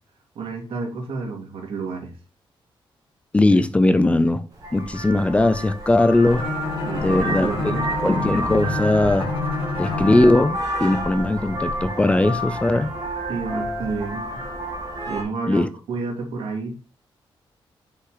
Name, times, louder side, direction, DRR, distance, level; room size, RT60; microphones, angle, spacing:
voice 1, 0.3-2.1 6.9-7.8 13.3-14.3 15.1-16.7, right 4 dB, 85° right, 2.6 m, -30 dB
voice 2, 3.3-4.4 4.7-6.5 7.0-7.5 8.0-9.3 9.8-12.9 15.5-15.7, left 2 dB, 15° left, 0.5 m, -19 dB
Vehicle horn car horn honking, 4.6-15.2, right 1 dB, 45° right, 2.3 m, -30 dB
Bowed string instrument, 6.3-10.5, left 4 dB, 80° left, 2.0 m, -28 dB
5.8 x 5.7 x 3.9 m
wide cardioid pair, 160°, 9 cm